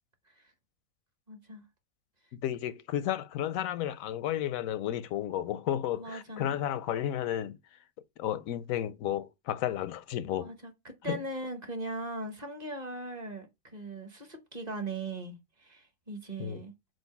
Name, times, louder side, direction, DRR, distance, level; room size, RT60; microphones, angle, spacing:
voice 1, 1.3-1.6 5.9-6.6 10.4-16.7, right 2 dB, 35° right, 1.0 m, -39 dB
voice 2, 2.3-7.6 8.2-10.5 11.1-11.2 16.4-16.6, left 11 dB, 90° left, 1.0 m, -32 dB
7.8 x 2.6 x 5.7 m
omnidirectional pair, 1.4 m